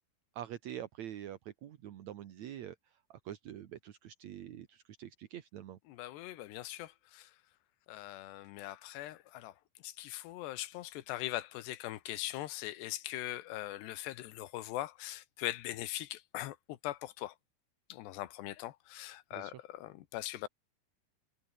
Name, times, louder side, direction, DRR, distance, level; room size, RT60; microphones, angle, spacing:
voice 1, 0.3-5.8 19.3-19.6, right 11 dB, 60° right, 2.0 m, -46 dB
voice 2, 5.9-7.3 7.9-9.5 9.8-17.4 17.9-20.5, left 15 dB, 80° left, 3.4 m, -41 dB
omnidirectional pair, 4.8 m